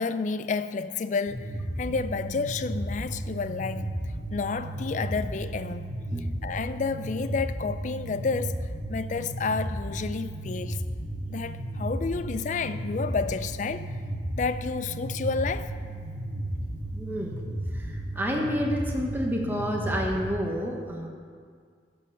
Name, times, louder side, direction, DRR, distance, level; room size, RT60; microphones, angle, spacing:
voice 1, 0.0-3.9 4.3-5.9 6.4-10.8 11.3-13.9 14.4-15.7, left 4 dB, 40° left, 0.3 m, -30 dB
sound 1, 1.3-20.3, right 1 dB, 65° right, 1.7 m, -34 dB
voice 2, 16.9-17.3 17.7-21.1, equal, 10° right, 0.9 m, -29 dB
11.0 x 5.5 x 6.4 m
head